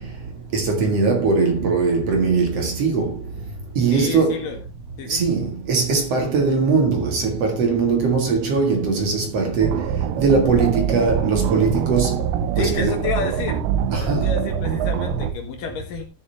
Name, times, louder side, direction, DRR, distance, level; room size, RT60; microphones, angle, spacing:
voice 1, 0.5-3.2 3.8-4.4 5.1-9.8 10.2-12.2 12.6-13.0 13.9-14.3, right 4 dB, 50° right, 2.0 m, -20 dB
voice 2, 3.9-4.6 5.0-5.2 12.6-13.6 14.0-16.0, left 5 dB, 55° left, 2.9 m, -30 dB
sound 1, 9.6-15.3, right 8 dB, 80° right, 3.0 m, -24 dB
14.0 x 6.9 x 3.3 m
omnidirectional pair, 5.2 m